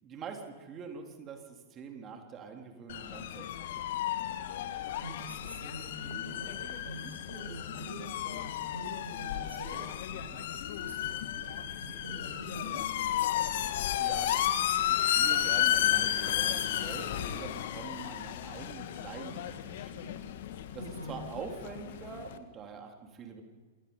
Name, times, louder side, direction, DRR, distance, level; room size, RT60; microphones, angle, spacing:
voice 1, 0.0-4.0 14.0-20.2 20.7-23.4, right 6 dB, 25° right, 3 dB, 3.5 m, -45 dB
sound 1, 2.9-22.4, left 11 dB, 55° left, 1.5 m, -33 dB
voice 2, 5.0-12.8 20.7-21.2, right 1 dB, 85° right, -3 dB, 8.0 m, -45 dB
27.0 x 21.5 x 5.6 m, 1.4 s
figure-of-eight pair, 100°, 0 cm